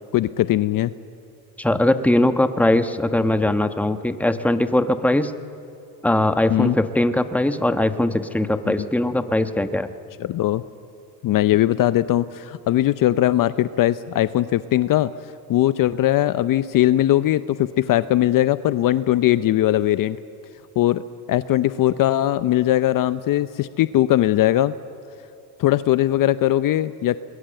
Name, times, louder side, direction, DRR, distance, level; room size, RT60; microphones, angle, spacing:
voice 1, 0.1-0.9 6.5-6.8 8.7-8.9 10.2-10.6 11.2-15.1 15.5-20.2 20.8-21.0 21.3-24.7 25.6-27.2, left 14 dB, 45° left, 14 dB, 0.7 m, -20 dB
voice 2, 1.6-5.3 6.0-9.9, left 1 dB, 5° left, 9 dB, 1.2 m, -20 dB
26.0 x 21.0 x 7.8 m, 2.7 s
supercardioid pair, 85°, 45 cm